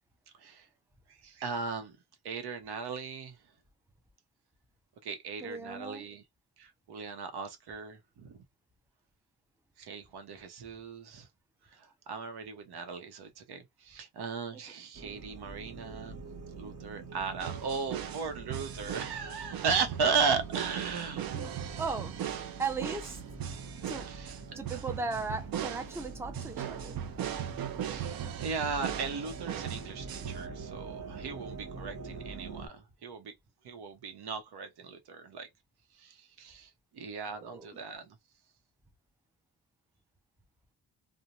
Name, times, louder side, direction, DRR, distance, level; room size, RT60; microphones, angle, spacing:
voice 1, 1.1-1.9 2.2-3.4 5.0-6.2 6.6-8.4 9.8-11.3 11.7-16.2 16.5-21.3 24.1-24.3 27.9-33.3 33.6-35.5 36.0-38.2, right 5 dB, 90° right, 0.8 m, -36 dB
voice 2, 5.4-6.1 21.3-22.2 22.6-23.2 23.9-24.1 24.5-27.0 37.3-37.8, right 4 dB, 5° right, 0.4 m, -37 dB
sound 1, 14.9-32.7, right 4 dB, 40° right, 1.0 m, -44 dB
sound 2, 17.4-30.5, right 10 dB, 65° right, 0.5 m, -39 dB
2.5 x 2.1 x 2.9 m
wide cardioid pair, 165°, 38 cm